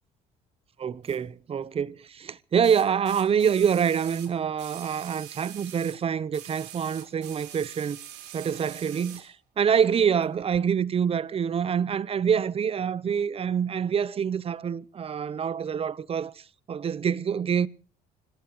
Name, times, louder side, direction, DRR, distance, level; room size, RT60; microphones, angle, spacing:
voice 1, 0.8-8.0 8.3-16.3 16.7-17.7, right 7 dB, 35° right, 0.7 m, -26 dB
sound 1, 1.0-1.2 2.6-6.0 6.3-9.3 10.2-10.3, right 11 dB, 90° right, 4.0 m, -44 dB
25.5 x 18.0 x 3.0 m
cardioid pair, 110°, 17 cm